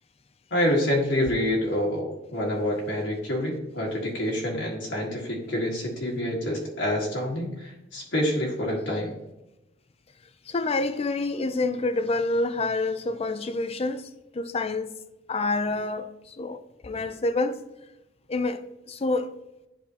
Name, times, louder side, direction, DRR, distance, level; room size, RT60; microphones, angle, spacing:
voice 1, 0.5-9.1, left 1 dB, 65° left, 1.7 m, -27 dB
voice 2, 10.5-14.9 15.3-17.7 18.3-18.6 18.9-19.3, left 2 dB, 30° left, 0.5 m, -27 dB
10.5 x 4.2 x 2.9 m
head